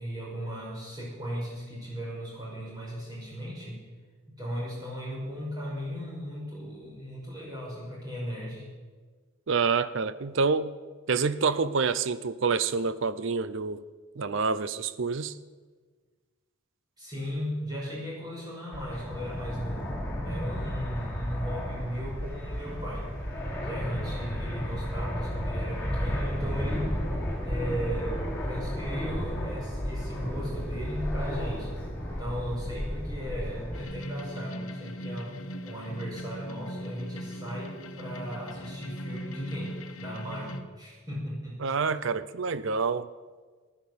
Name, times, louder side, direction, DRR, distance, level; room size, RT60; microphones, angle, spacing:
voice 1, 0.0-3.8 4.3-8.7 17.0-19.9 20.2-23.1 23.6-26.9 27.4-31.7 32.2-35.4 35.6-41.6, equal, 20° right, 5.6 m, -36 dB
voice 2, 9.5-10.7 11.1-13.8 14.2-15.3 41.6-43.1, right 5 dB, 60° right, 0.5 m, -27 dB
Fixed-wing aircraft airplane, 18.7-33.8, equal, 10° left, 4.0 m, -33 dB
sound 1, 33.7-40.6, equal, 75° left, 1.1 m, -39 dB
15.0 x 11.5 x 6.9 m
head